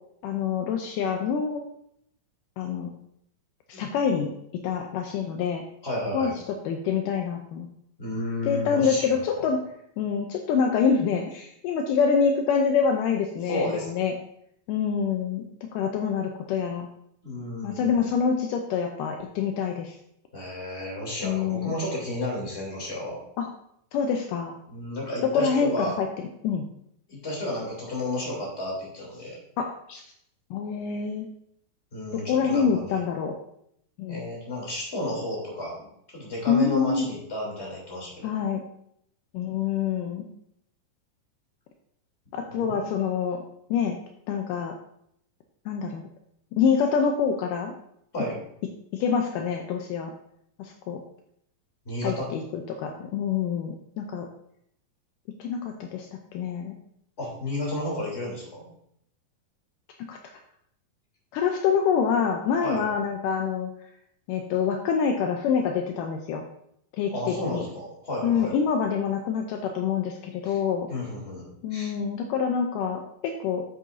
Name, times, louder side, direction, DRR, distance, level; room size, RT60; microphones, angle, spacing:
voice 1, 0.2-1.6 2.6-2.9 3.7-4.3 4.6-5.6 6.1-6.3 6.7-7.7 8.5-9.6 10.0-14.1 14.7-15.4 15.7-16.9 17.6-20.0 21.2-21.8 23.4-23.5 23.9-24.5 25.2-26.1 26.4-26.7 29.6-30.0 30.5-31.3 32.3-33.4 34.0-34.2 36.5-37.1 38.2-38.6 39.3-40.3 42.3-43.4 43.7-44.0 44.3-44.8 45.7-46.1 46.6-47.7 48.9-50.1 50.6-51.0 52.0-54.3 55.4-56.1 56.3-56.7 60.1-60.2 61.3-63.7 64.3-66.4 67.0-67.7 68.2-70.9 71.6-73.6, left 6 dB, 80° left, 3 dB, 2.1 m, -26 dB
voice 2, 5.8-6.3 8.0-9.5 13.4-13.9 17.2-18.0 20.3-23.2 24.7-26.0 27.1-29.4 31.9-33.0 34.1-35.9 36.1-38.3 42.5-42.8 48.1-48.4 51.8-52.3 57.2-58.6 62.6-62.8 67.1-68.5 70.4-70.6 70.9-71.9, left 1 dB, 20° left, -3 dB, 3.0 m, -32 dB
9.3 x 8.6 x 2.7 m, 0.74 s
omnidirectional pair, 4.1 m